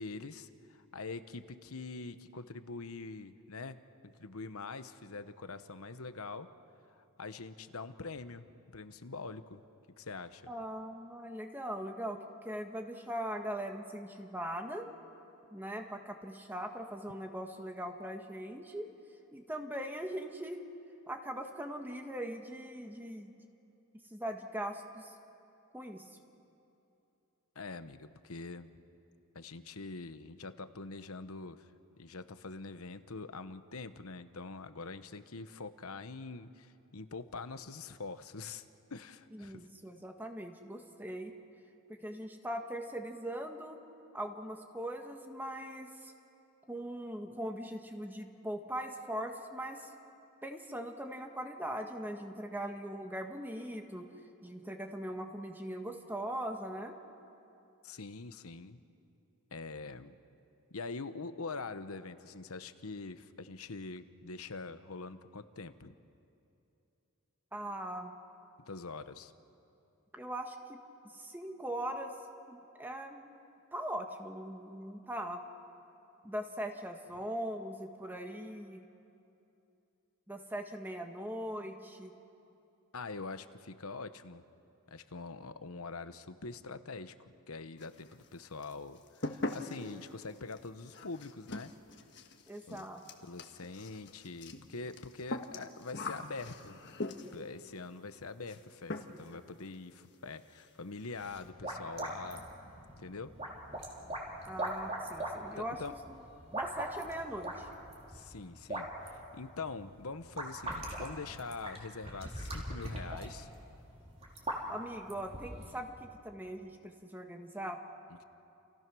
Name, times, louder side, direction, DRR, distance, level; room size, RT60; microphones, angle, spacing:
voice 1, 0.0-3.8 4.0-6.5 6.9-8.5 8.7-9.6 10.0-10.5 27.5-28.7 29.3-31.7 32.0-39.7 57.8-58.8 59.5-60.2 60.7-66.0 68.7-69.3 82.9-84.4 84.9-91.7 92.7-92.9 93.2-96.8 97.3-102.5 103.0-103.3 105.5-105.9 108.1-113.5, left 3 dB, 80° left, 11 dB, 1.1 m, -44 dB
voice 2, 10.5-14.9 15.5-18.9 19.3-20.6 21.1-23.3 24.1-25.1 25.7-26.0 39.3-41.3 41.9-43.8 44.1-46.1 46.7-49.9 50.4-54.1 54.4-56.9 67.5-68.1 70.1-70.8 71.1-72.1 72.5-73.3 73.7-75.4 76.2-78.9 80.3-82.1 92.5-93.0 104.5-105.8 106.1-106.2 106.5-107.7 114.7-117.8, right 1 dB, 10° right, 4 dB, 1.7 m, -40 dB
sound 1, 87.8-88.3 88.6-97.5 98.5-98.6 98.9-99.4 99.7-99.8 100.1-100.2 100.5-100.7 101.0-101.5, left 2 dB, 50° left, 1.5 m, -42 dB
sound 2, 101.2-115.8, right 1 dB, 30° right, 3.6 m, -42 dB
30.0 x 29.0 x 6.2 m, 2.8 s
head